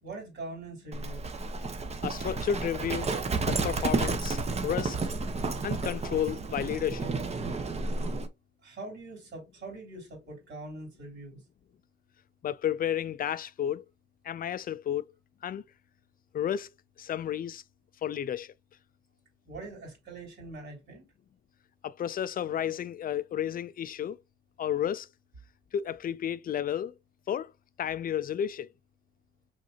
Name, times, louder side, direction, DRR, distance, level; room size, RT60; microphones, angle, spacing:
voice 1, 0.0-1.3 8.6-11.4 19.4-21.0, right 2 dB, 60° right, 3.2 m, -43 dB
Livestock farm animals working animals, 0.9-8.3, right 3 dB, 35° right, 0.9 m, -31 dB
voice 2, 2.0-3.1 3.5-5.0 5.6-7.1 12.4-13.9 14.2-15.1 15.4-15.6 16.3-16.7 17.0-17.6 18.0-18.5 21.8-24.2 24.6-25.1 25.7-26.9 27.3-27.5 27.8-28.7, left 9 dB, 45° left, 0.5 m, -32 dB
5.5 x 3.3 x 2.7 m
cardioid pair, 90°, 20 cm